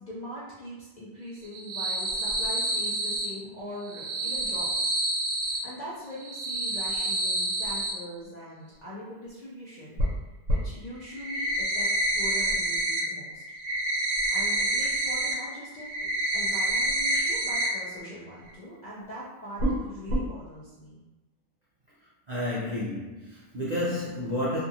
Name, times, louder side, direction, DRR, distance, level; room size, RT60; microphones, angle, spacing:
voice 1, 0.0-5.0 5.4-10.0 10.5-13.4 14.3-21.0, equal, 55° left, -8 dB, 0.5 m, -42 dB
sound 1, 1.4-3.3 3.8-5.6 6.1-7.9 10.0-10.1 10.5-10.6 11.0-13.0 13.3-15.3 15.7-17.7 18.0-18.1 18.5-18.6 19.6-19.8 20.1-20.2, right 1 dB, 75° right, 0.9 m, -28 dB
voice 2, 22.3-24.6, left 1 dB, 60° right, -8 dB, 0.4 m, -30 dB
2.7 x 2.4 x 2.7 m, 1.1 s
omnidirectional pair, 1.3 m